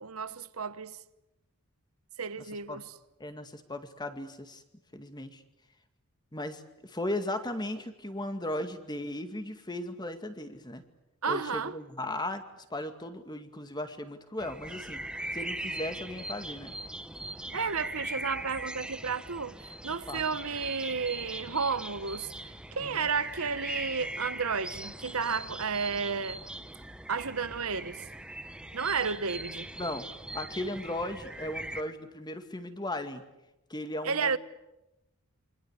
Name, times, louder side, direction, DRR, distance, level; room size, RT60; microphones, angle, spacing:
voice 1, 0.0-1.0 2.2-2.8 11.2-11.7 17.5-26.4 27.1-28.0 28.7-29.7 34.0-34.4, right 5 dB, 75° right, 1.2 m, -32 dB
voice 2, 3.2-4.6 4.9-5.4 6.3-10.8 11.3-15.0 15.3-16.7 20.1-20.2 22.8-23.1 29.8-30.1 30.3-33.2 33.7-34.3, left 1 dB, 20° left, 2.2 m, -36 dB
sound 1, 14.4-31.8, right 1 dB, 5° right, 0.9 m, -40 dB
28.5 x 25.0 x 8.2 m
head